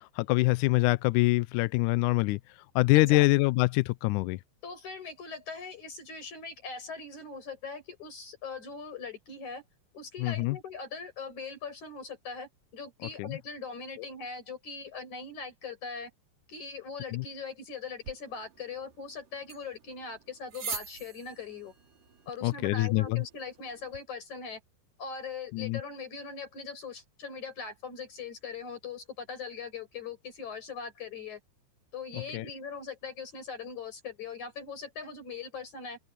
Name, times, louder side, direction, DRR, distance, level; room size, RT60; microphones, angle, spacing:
voice 1, 0.2-2.4 2.8-4.4 10.2-10.6 13.2-13.3 17.1-17.2 22.4-23.2 25.5-25.8 32.3-32.5, left 21 dB, 85° left, 1.8 m, -25 dB
voice 2, 4.6-9.6 9.9-16.1 16.5-21.7 22.3-24.6 25.0-31.4 31.9-36.0, left 5 dB, 50° left, 8.0 m, -41 dB
sound 1, 18.0-24.0, right 6 dB, 65° right, 5.7 m, -45 dB
open air
omnidirectional pair, 4.2 m